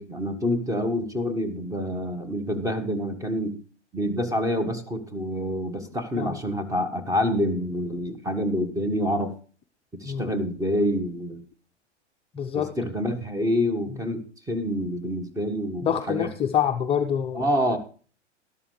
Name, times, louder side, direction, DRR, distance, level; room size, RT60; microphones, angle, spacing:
voice 1, 0.0-3.6 3.9-9.3 10.0-11.4 12.5-16.3 17.3-17.8, equal, 10° right, 8 dB, 1.2 m, -27 dB
voice 2, 12.3-12.7 15.8-17.5, left 9 dB, 15° left, 4 dB, 0.6 m, -26 dB
12.5 x 11.5 x 3.2 m, 0.39 s
figure-of-eight pair, 100°, 35 cm